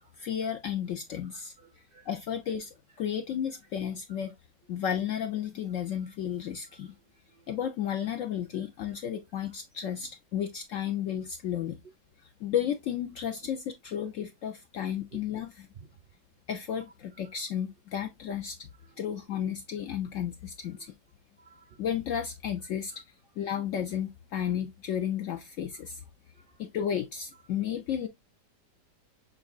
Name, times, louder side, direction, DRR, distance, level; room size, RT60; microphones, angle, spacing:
voice 1, 0.0-1.5 2.1-4.3 4.7-6.9 7.5-11.8 12.2-15.7 16.5-18.7 19.0-20.9 21.8-22.9 23.4-26.0 26.6-28.1, left 9 dB, 70° left, 0.7 m, -33 dB
voice 2, 1.3-2.1 6.0-6.1 6.7-7.5 15.1-15.2 15.8-15.9 17.2-17.4 18.8-19.0 20.7-20.9 21.4-21.8 24.4-24.5 26.3-26.6, right 5 dB, 75° right, 0.5 m, -57 dB
6.5 x 3.5 x 2.3 m
omnidirectional pair, 1.8 m